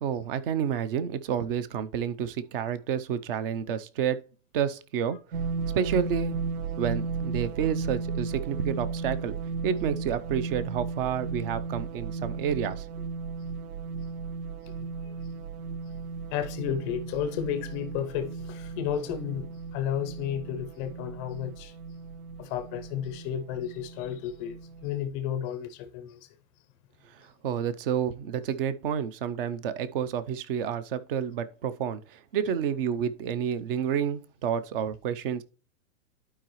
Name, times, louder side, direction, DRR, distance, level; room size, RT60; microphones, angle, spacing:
voice 1, 0.0-4.2 4.5-5.2 5.7-6.4 6.8-9.4 9.6-12.9 27.2-35.4, right 8 dB, 40° right, 0.6 m, -29 dB
sound 1, 5.3-24.9, right 5 dB, 90° right, 0.8 m, -35 dB
voice 2, 14.8-15.1 16.3-21.7 22.4-26.3, left 9 dB, 20° left, 0.5 m, -33 dB
11.5 x 4.9 x 3.0 m
hypercardioid pair, 155°, 43 cm